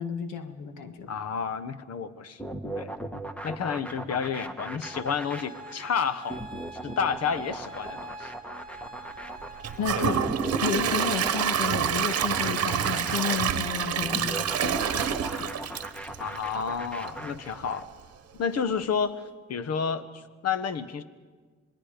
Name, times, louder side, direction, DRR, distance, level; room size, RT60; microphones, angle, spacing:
voice 1, 0.0-1.1 9.8-10.2 10.6-15.5 18.6-18.7, left 7 dB, 85° left, 7 dB, 1.7 m, -32 dB
voice 2, 1.1-2.4 2.8-2.9 3.4-6.4 6.8-8.3 10.0-10.1 16.2-17.9 18.4-19.2 19.5-21.0, left 6 dB, 55° left, 13 dB, 1.2 m, -30 dB
sound 1, 2.4-17.8, right 1 dB, 5° left, 1.3 m, -38 dB
sound 2, 4.8-9.9, right 2 dB, 15° right, 3.1 m, -44 dB
Gurgling / Toilet flush / Trickle dribble, 9.6-16.7 17.1-17.2 17.6-17.7, right 9 dB, 55° right, 1.1 m, -27 dB
26.5 x 20.0 x 5.1 m, 1.5 s
cardioid pair, 90°, 30 cm